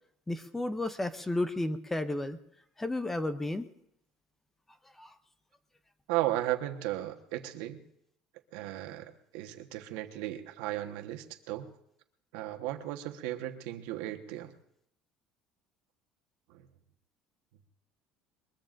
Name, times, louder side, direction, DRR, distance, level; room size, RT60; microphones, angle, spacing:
voice 1, 0.3-2.4 2.8-3.7 5.0-5.1, left 2 dB, 10° left, 11 dB, 0.6 m, -32 dB
voice 2, 6.1-7.8 8.5-11.7 12.3-14.5 16.5-16.7, right 14 dB, 85° right, 5 dB, 1.3 m, -35 dB
22.0 x 21.5 x 2.6 m, 0.75 s
cardioid pair, 165°, 3 cm